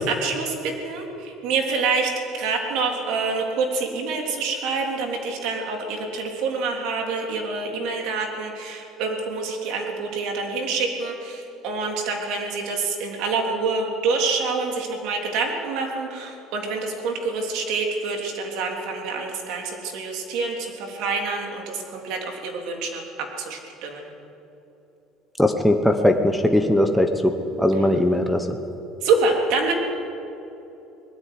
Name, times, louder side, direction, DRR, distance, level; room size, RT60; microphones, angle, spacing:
voice 1, 0.0-24.1 27.7-28.0 29.0-29.7, right 4 dB, 65° right, 2 dB, 3.4 m, -27 dB
voice 2, 25.4-27.3 27.6-28.4, left 1 dB, ahead, 4 dB, 1.0 m, -19 dB
20.0 x 13.5 x 9.6 m, 3.0 s
cardioid pair, 160°, 0 cm